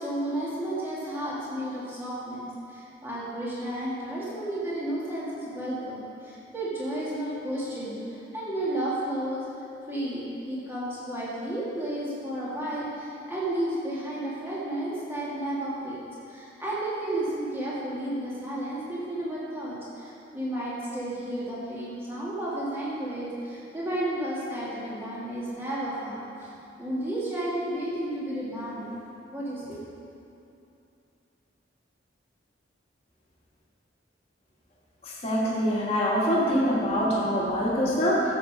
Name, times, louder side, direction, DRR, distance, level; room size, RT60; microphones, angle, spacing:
voice 1, 0.0-8.0 8.3-9.5 9.9-16.0 16.3-26.5 26.8-28.9 29.3-29.8, right 1 dB, 10° right, -9 dB, 2.9 m, -32 dB
voice 2, 35.2-38.2, equal, 30° left, -6 dB, 2.3 m, -24 dB
13.0 x 7.8 x 5.2 m, 2.8 s
head